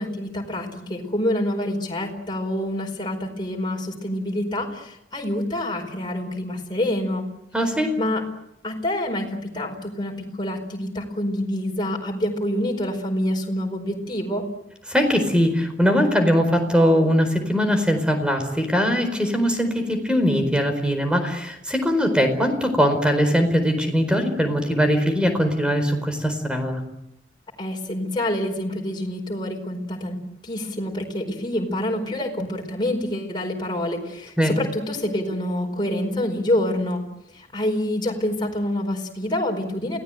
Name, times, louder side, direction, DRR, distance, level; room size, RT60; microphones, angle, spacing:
voice 1, 0.0-7.3 8.0-8.2 8.6-14.5 27.6-37.1 37.3-40.0, left 1 dB, 25° left, 1 dB, 4.8 m, -27 dB
voice 2, 7.5-7.9 14.9-26.8 34.4-34.5, equal, 5° right, 7 dB, 4.5 m, -21 dB
29.0 x 18.5 x 9.2 m, 0.82 s
head